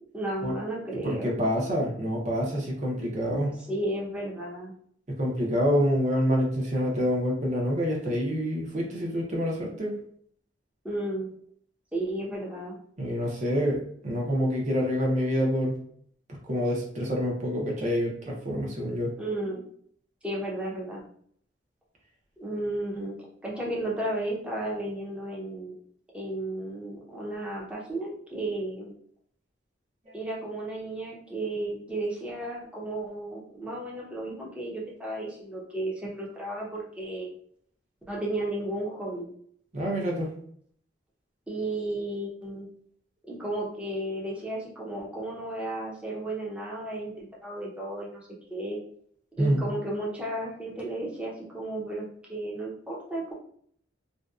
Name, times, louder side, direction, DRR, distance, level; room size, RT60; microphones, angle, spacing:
voice 1, 0.1-1.4 3.7-4.7 10.8-11.3 11.9-12.7 19.2-19.6 20.2-21.0 22.4-23.1 23.4-25.7 26.1-28.9 30.1-37.3 38.1-39.3 41.5-42.7 43.3-48.8 49.4-53.3, right 1 dB, 5° right, -5 dB, 0.6 m, -33 dB
voice 2, 1.0-3.6 5.1-9.9 13.0-15.8 16.4-19.1 39.7-40.3 49.4-49.6, equal, 40° right, -1 dB, 0.7 m, -27 dB
2.7 x 2.2 x 2.3 m, 0.62 s
head